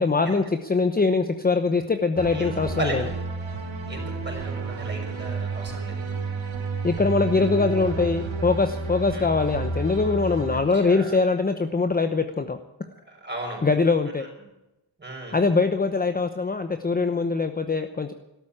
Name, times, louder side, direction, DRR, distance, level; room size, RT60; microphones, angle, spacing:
voice 1, 0.0-3.0 6.8-12.6 13.6-14.2 15.3-18.1, left 4 dB, 20° left, 8 dB, 0.9 m, -23 dB
sound 1, 2.1-10.6, right 4 dB, 75° right, 4.1 m, -31 dB
voice 2, 2.3-3.1 3.9-6.2 9.1-9.3 10.8-11.2 13.1-13.6 15.0-15.4, right 2 dB, 20° right, 2 dB, 5.8 m, -35 dB
13.0 x 13.0 x 8.7 m, 0.94 s
wide cardioid pair, 140°, 46 cm